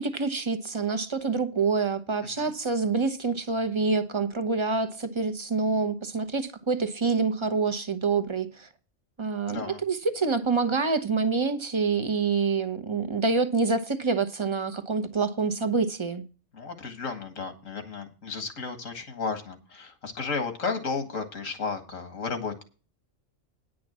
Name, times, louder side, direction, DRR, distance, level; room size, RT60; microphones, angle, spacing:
voice 1, 0.0-8.7 9.2-16.2, right 4 dB, 25° right, 0.9 m, -27 dB
voice 2, 9.5-9.8 16.5-22.6, left 4 dB, 90° left, 2.1 m, -33 dB
10.0 x 6.2 x 7.3 m
omnidirectional pair, 1.3 m